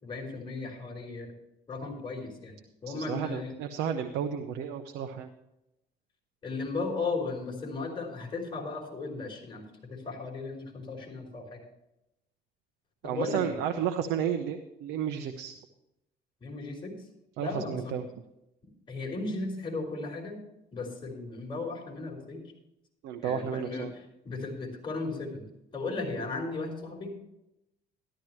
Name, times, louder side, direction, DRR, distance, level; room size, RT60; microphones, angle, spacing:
voice 1, 0.0-1.3 1.7-3.5 6.4-9.6 9.9-11.6 13.0-13.6 16.4-16.9 17.4-18.0 18.9-20.4 20.7-22.4 23.2-25.4 25.7-27.1, left 3 dB, 30° left, -1 dB, 5.0 m, -36 dB
voice 2, 2.9-5.3 13.0-15.5 17.4-18.1 23.0-23.9, right 8 dB, 90° right, 6 dB, 0.9 m, -32 dB
13.5 x 12.5 x 3.1 m, 0.87 s
cardioid pair, 110°, 17 cm